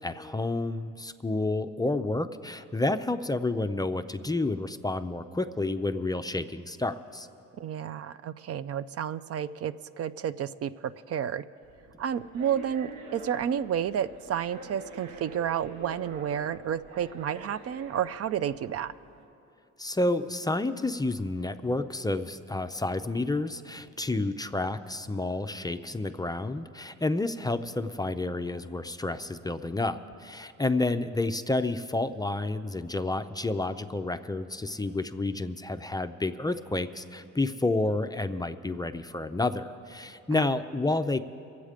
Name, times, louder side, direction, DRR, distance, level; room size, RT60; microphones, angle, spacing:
voice 1, 0.0-7.3 19.8-41.2, left 2 dB, 15° left, 9 dB, 0.4 m, -30 dB
voice 2, 7.6-11.4 12.0-18.9 40.3-40.6, right 9 dB, 50° right, 14 dB, 0.4 m, -31 dB
sound 1, 11.6-19.3, right 3 dB, 90° right, 1.3 m, -47 dB
24.0 x 8.2 x 5.0 m, 2.7 s
cardioid pair, 90°, 30 cm